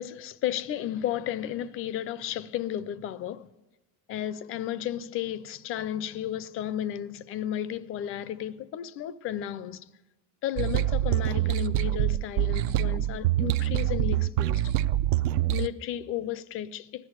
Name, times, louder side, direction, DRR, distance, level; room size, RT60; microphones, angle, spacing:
voice 1, 0.0-3.5 4.1-9.9 10.4-14.7 15.5-17.1, left 11 dB, 35° left, 0.4 m, -33 dB
sound 1, 10.6-15.7, right 13 dB, 65° right, 0.6 m, -25 dB
15.5 x 11.0 x 8.0 m
supercardioid pair, 140°, 40 cm